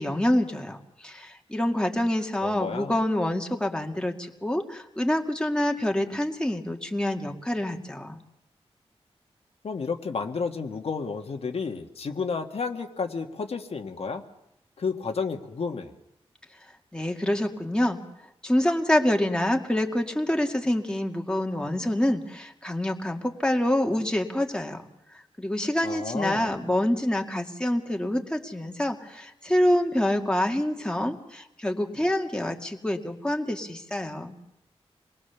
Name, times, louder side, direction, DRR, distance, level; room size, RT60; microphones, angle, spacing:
voice 1, 0.0-8.2 16.9-18.0 18.4-24.8 25.4-34.3, left 1 dB, 10° left, 2 dB, 2.1 m, -26 dB
voice 2, 2.4-2.9 9.6-14.2 14.8-15.9 25.8-26.5, left 5 dB, 70° left, 4 dB, 1.7 m, -31 dB
26.0 x 20.5 x 7.0 m, 0.86 s
wide cardioid pair, 90°, 11 cm